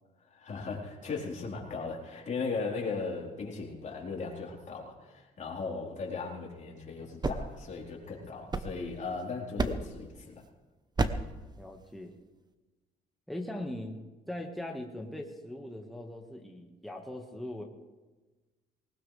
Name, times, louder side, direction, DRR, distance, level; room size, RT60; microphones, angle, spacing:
voice 1, 0.2-10.4, left 4 dB, 45° left, -2 dB, 4.1 m, -37 dB
sound 1, 6.9-9.2 9.6-10.1 11.0-11.4, right 3 dB, 25° right, 1.0 m, -33 dB
voice 2, 11.6-12.1 13.3-14.0 14.3-17.6, left 1 dB, ahead, 1 dB, 1.7 m, -40 dB
20.0 x 18.5 x 3.4 m, 1.2 s
cardioid pair, 100°, 17 cm